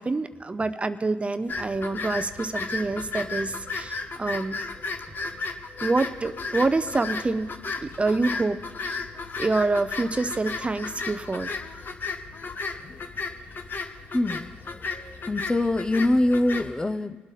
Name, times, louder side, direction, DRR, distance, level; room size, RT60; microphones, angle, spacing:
voice 1, 0.0-4.6 5.8-7.5 7.8-9.0 9.4-11.6, right 3 dB, 25° right, 12 dB, 0.6 m, -27 dB
sound 1, 1.5-16.7, left 4 dB, 50° left, 1.1 m, -34 dB
voice 2, 14.1-14.5 15.3-17.2, left 1 dB, 20° left, 10 dB, 0.7 m, -23 dB
23.5 x 8.1 x 4.1 m, 1.3 s
supercardioid pair, 60°, 4 cm